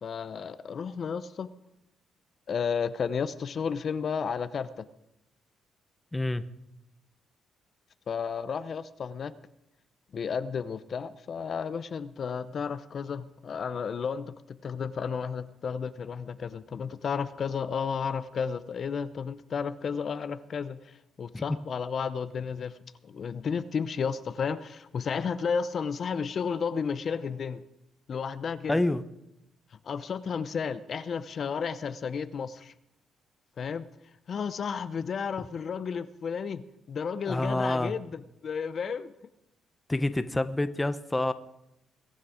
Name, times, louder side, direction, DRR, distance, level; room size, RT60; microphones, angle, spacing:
voice 1, 0.0-1.5 2.5-4.9 8.1-9.3 10.1-22.8 23.0-27.6 28.1-28.8 29.8-32.7 33.6-33.9 34.3-39.1, left 6 dB, 50° left, 13 dB, 0.7 m, -32 dB
voice 2, 6.1-6.4 21.3-21.4 28.7-29.0 37.3-37.9 39.9-41.3, left 2 dB, 15° left, 12 dB, 0.7 m, -27 dB
21.0 x 8.9 x 4.9 m, 0.85 s
cardioid pair, 90°, 0 cm